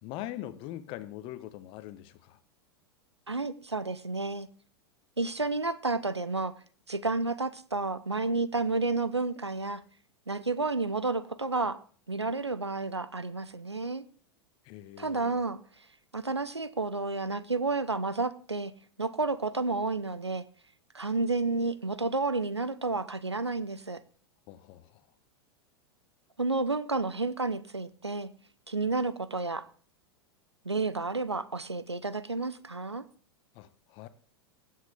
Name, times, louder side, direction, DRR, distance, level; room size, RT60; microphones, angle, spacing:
voice 1, 0.0-2.4 14.6-15.4 24.5-25.0 33.5-34.1, left 13 dB, 40° left, 1.1 m, -42 dB
voice 2, 3.3-4.5 5.2-6.5 6.9-9.8 10.3-11.8 12.1-14.0 15.0-15.6 16.1-18.7 19.0-20.5 20.9-24.0 26.4-28.3 28.7-29.6 30.6-33.0, right 3 dB, 90° right, 0.7 m, -31 dB
20.5 x 7.6 x 3.6 m
figure-of-eight pair, 90°, 14 cm